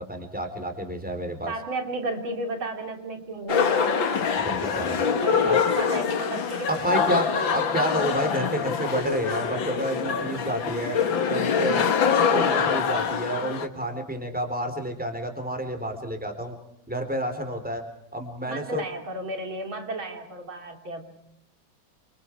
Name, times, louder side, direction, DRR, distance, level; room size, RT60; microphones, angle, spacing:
voice 1, 0.0-1.5 4.4-5.0 5.5-5.6 6.7-11.0 11.3-11.8 12.3-16.6 16.9-17.8 18.1-18.8, right 1 dB, 5° right, 6 dB, 3.8 m, -30 dB
voice 2, 1.5-4.0 5.2-7.7 18.5-21.1, right 1 dB, 85° right, 4 dB, 3.9 m, -33 dB
sound 1, 3.5-13.7, left 6 dB, 75° left, 2.3 m, -24 dB
29.0 x 27.0 x 4.7 m, 0.78 s
omnidirectional pair, 2.1 m